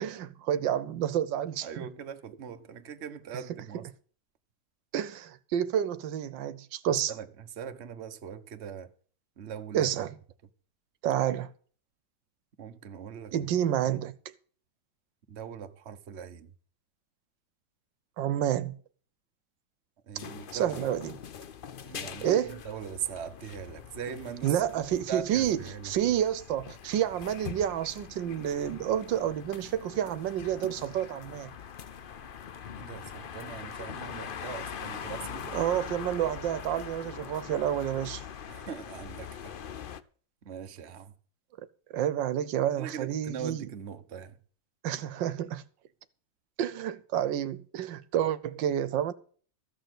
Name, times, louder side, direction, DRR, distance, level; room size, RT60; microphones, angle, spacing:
voice 1, 0.0-1.8 4.9-7.1 9.7-10.1 11.0-11.5 13.3-14.1 18.2-18.8 20.5-21.1 22.2-22.6 24.4-25.6 25.8-31.5 35.5-38.2 41.9-43.7 44.8-45.6 46.6-49.1, right 10 dB, 85° right, 1.5 m, -29 dB
voice 2, 1.6-3.9 6.8-8.9 9.4-9.9 12.6-13.5 15.3-16.5 20.1-20.8 21.8-26.1 32.8-35.7 38.5-39.5 40.4-41.1 42.8-44.4, right 7 dB, 40° right, 1.2 m, -41 dB
sound 1, 20.1-40.0, left 8 dB, 85° left, 0.4 m, -43 dB
14.5 x 6.8 x 7.8 m
omnidirectional pair, 1.9 m